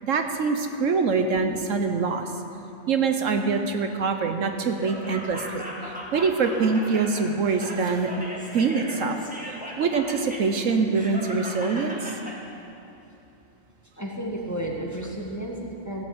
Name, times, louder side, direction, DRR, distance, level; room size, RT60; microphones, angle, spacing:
voice 1, 0.0-2.3 2.9-5.7 6.1-8.2 8.5-9.2 9.8-12.1, right 4 dB, 65° right, 6 dB, 1.1 m, -24 dB
Laughter, 4.7-12.4, equal, 5° right, 1.9 m, -38 dB
voice 2, 13.9-16.0, right 1 dB, 10° left, -2 dB, 1.4 m, -32 dB
15.5 x 7.9 x 8.0 m, 2.8 s
omnidirectional pair, 1.5 m